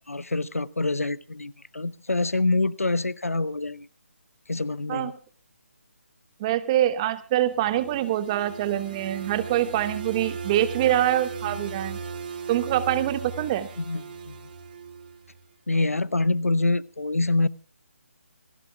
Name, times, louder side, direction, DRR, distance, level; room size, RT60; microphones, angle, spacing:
voice 1, 0.1-3.9 4.5-5.1 13.8-14.4 15.7-17.5, left 2 dB, 85° left, 0.8 m, -26 dB
voice 2, 6.4-12.0 12.5-13.7, right 12 dB, 25° right, 1.0 m, -25 dB
sound 1, 7.3-15.4, right 5 dB, 40° right, 2.4 m, -37 dB
27.0 x 13.5 x 2.3 m
figure-of-eight pair, 150°, 8 cm